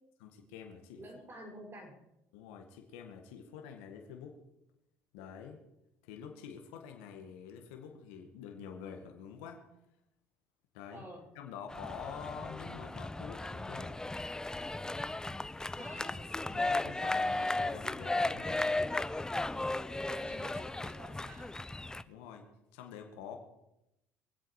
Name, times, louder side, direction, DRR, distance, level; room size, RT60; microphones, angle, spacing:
voice 1, 0.2-1.0 2.3-4.4 5.1-5.6 6.0-9.7 10.7-11.0 11.4-14.0 16.5-18.7 22.1-23.4, left 7 dB, 85° left, 3 dB, 1.8 m, -47 dB
voice 2, 1.0-2.1 10.9-11.3 15.7-16.2 20.1-21.6, right 1 dB, 35° right, 1 dB, 5.9 m, -49 dB
sound 1, 11.7-22.0, left 2 dB, 10° left, 0.6 m, -35 dB
24.0 x 8.2 x 4.9 m, 0.86 s
supercardioid pair, 85°, 7 cm